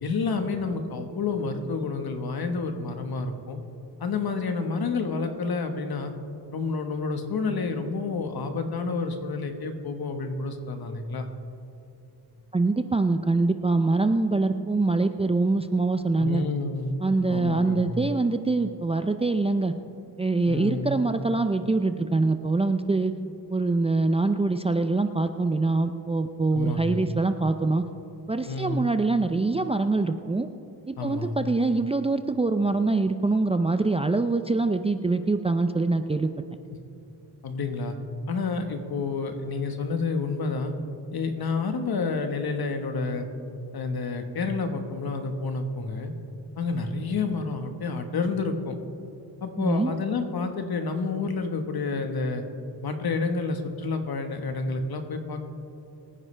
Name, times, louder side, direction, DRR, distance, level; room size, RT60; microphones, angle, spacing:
voice 1, 0.0-3.6 4.0-6.1 6.5-11.3 16.2-16.9 17.3-17.9 20.5-20.9 26.5-27.1 28.5-28.9 31.0-31.4 37.4-38.0 38.3-40.7 41.1-43.3 43.7-46.1 46.6-48.8 49.4-52.4 52.8-55.5, left 4 dB, 60° left, 6 dB, 1.4 m, -29 dB
voice 2, 12.5-16.4 17.0-19.7 20.2-23.1 23.5-27.8 28.3-30.5 30.9-36.3 49.6-49.9, right 3 dB, 15° right, 8 dB, 0.4 m, -24 dB
23.0 x 9.8 x 3.3 m, 2.7 s
cardioid pair, 95°, 42 cm